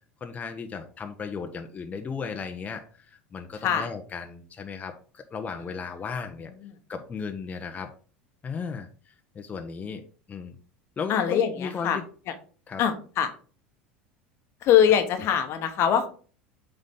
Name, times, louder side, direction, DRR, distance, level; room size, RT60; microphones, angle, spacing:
voice 1, 0.2-6.5 6.9-7.9 8.4-10.0 10.3-10.5 11.0-12.0 12.7-12.8, left 5 dB, 25° left, 5 dB, 0.9 m, -35 dB
voice 2, 11.1-12.0 12.3-12.4 12.8-13.3 14.6-16.1, left 9 dB, 50° left, 8 dB, 1.1 m, -23 dB
7.6 x 4.0 x 3.7 m, 0.40 s
hypercardioid pair, 80°, 6 cm